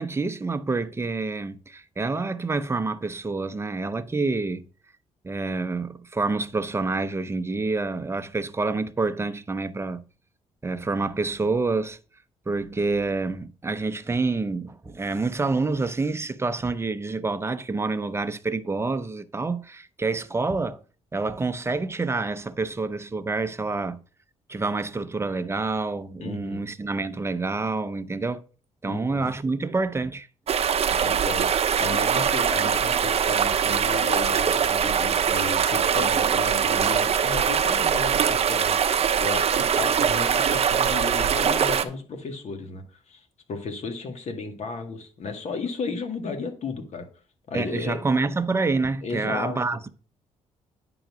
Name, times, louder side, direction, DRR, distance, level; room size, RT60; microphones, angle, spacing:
voice 1, 0.0-4.7 5.2-10.0 10.6-12.0 12.5-20.8 21.1-24.0 24.5-28.4 28.8-30.3 30.9-31.0 47.5-49.9, right 3 dB, 20° right, 0.7 m, -27 dB
voice 2, 26.2-26.7 28.9-29.3 31.0-47.1 47.5-48.0 49.0-49.6, left 4 dB, 60° left, 1.9 m, -34 dB
sound 1, 30.5-41.8, right 7 dB, 50° right, 0.8 m, -22 dB
10.0 x 3.9 x 6.1 m
cardioid pair, 95°, 13 cm